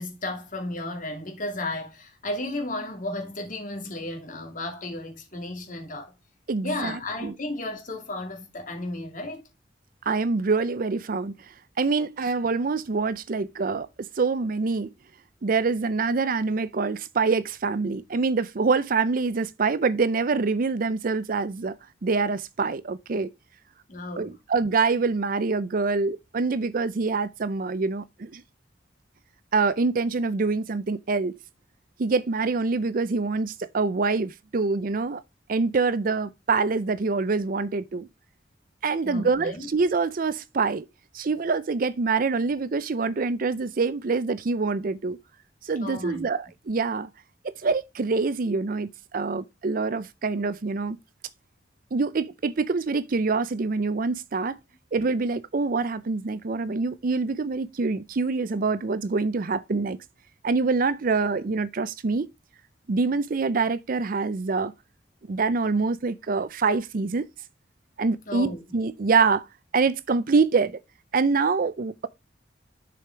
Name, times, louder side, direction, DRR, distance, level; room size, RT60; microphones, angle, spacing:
voice 1, 0.0-6.1 6.6-9.4 23.9-24.4 39.0-39.7 45.8-46.4 68.3-68.6, left 2 dB, 45° left, 2.5 m, -34 dB
voice 2, 6.5-7.3 10.1-11.3 11.8-14.9 15.4-21.8 22.0-23.3 24.2-28.4 29.5-31.4 32.0-35.2 35.5-38.1 38.8-40.8 41.1-45.2 45.6-47.1 47.4-51.0 51.9-54.6 54.9-60.0 60.4-62.3 62.9-64.7 65.3-67.3 68.0-69.5 69.7-70.8 71.1-72.1, right 4 dB, 50° right, 0.5 m, -25 dB
6.8 x 4.9 x 4.5 m
head